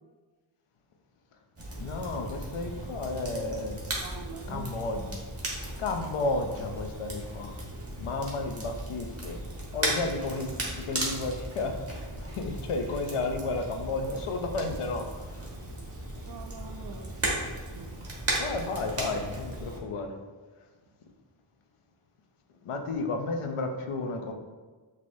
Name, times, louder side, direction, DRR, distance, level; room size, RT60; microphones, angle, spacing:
Crackle, 1.6-19.8, right 1 dB, 30° right, 1.3 m, -36 dB
voice 1, 1.8-3.8 4.5-5.2 5.8-7.5 8.0-9.4 9.7-12.1 12.4-15.4 18.4-20.1 22.6-24.3, left 3 dB, 85° left, 4 dB, 0.7 m, -32 dB
voice 2, 4.0-4.7 16.2-17.5 17.7-17.9, right 5 dB, 50° right, 6 dB, 0.5 m, -44 dB
6.2 x 2.7 x 2.6 m, 1.4 s
cardioid pair, 55°, 50 cm